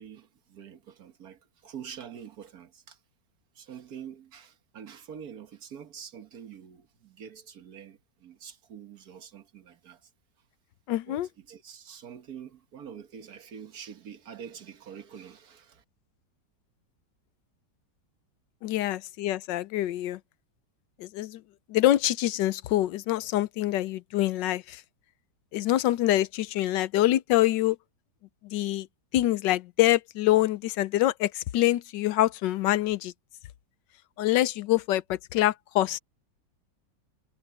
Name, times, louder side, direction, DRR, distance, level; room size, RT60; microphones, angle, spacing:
voice 1, 0.0-3.0 3.6-10.1 11.1-15.8, right 8 dB, 55° right, 1.8 m, -46 dB
voice 2, 10.9-11.3 18.6-20.2 21.0-21.4 21.7-24.8 25.5-27.8 28.4-28.9 29.1-33.1 34.2-36.0, left 15 dB, 80° left, 1.3 m, -25 dB
omnidirectional pair, 2.0 m